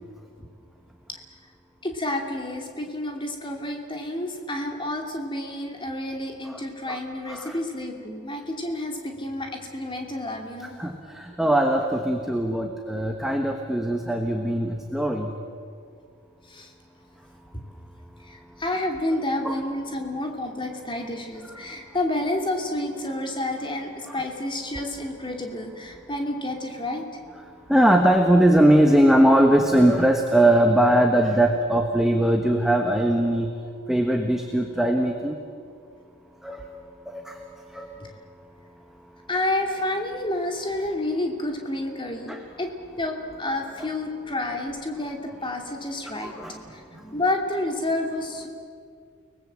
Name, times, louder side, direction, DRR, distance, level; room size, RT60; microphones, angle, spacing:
voice 1, 1.8-10.7 16.4-16.7 18.2-27.0 39.3-42.7 43.0-48.5, left 1 dB, 25° left, 2 dB, 2.8 m, -30 dB
voice 2, 10.8-15.3 19.4-19.6 24.1-24.2 27.7-33.5 33.9-35.4 36.4-36.6 37.1-37.4 37.7-37.9 42.3-42.4 46.2-46.6, right 1 dB, ahead, 3 dB, 1.4 m, -20 dB
30.0 x 20.0 x 7.7 m, 2.2 s
head